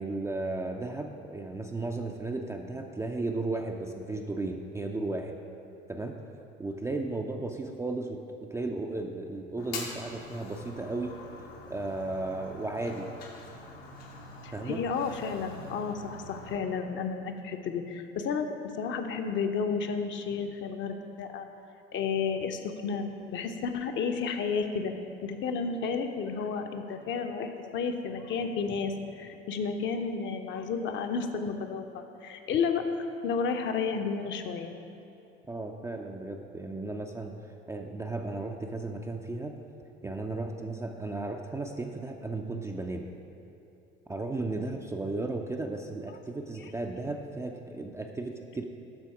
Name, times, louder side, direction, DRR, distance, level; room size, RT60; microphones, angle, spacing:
voice 1, 0.0-5.4 5.9-6.2 6.6-11.1 11.7-13.1 14.5-14.8 35.5-37.3 37.7-39.5 40.0-43.1 44.1-48.6, right 2 dB, 10° right, 2 dB, 0.4 m, -35 dB
Fire, 9.6-16.6, left 3 dB, 75° left, 1.1 m, -44 dB
voice 2, 14.4-18.5 18.8-21.5 21.9-24.9 25.2-32.8 33.2-34.7 46.6-46.7, left 5 dB, 40° left, 6 dB, 0.7 m, -32 dB
12.0 x 4.1 x 4.8 m, 2.9 s
figure-of-eight pair, 60°, 30 cm